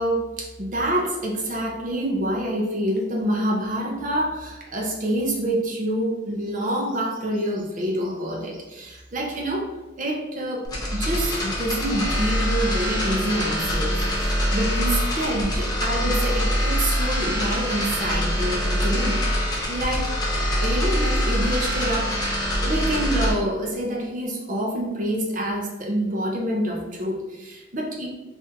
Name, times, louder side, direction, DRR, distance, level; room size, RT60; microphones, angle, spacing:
voice 1, 0.0-19.2 19.7-20.1 20.5-22.2 22.6-28.1, right 1 dB, 45° right, -1 dB, 0.7 m, -27 dB
sound 1, 10.6-23.3, equal, 25° left, 0.7 m, -24 dB
3.6 x 2.6 x 2.8 m, 1.1 s
head